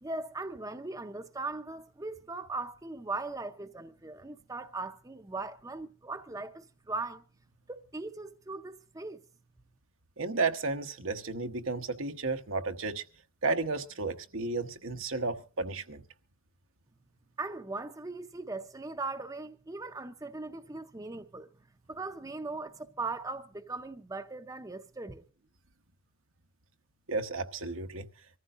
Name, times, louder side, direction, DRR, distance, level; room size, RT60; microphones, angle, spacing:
voice 1, 0.0-7.2 7.7-9.2 17.4-21.5 21.9-25.2, right 3 dB, 15° right, 0.6 m, -39 dB
voice 2, 10.2-13.0 13.4-16.0 27.1-28.1, right 3 dB, 80° right, 1.1 m, -33 dB
25.0 x 14.5 x 2.5 m
head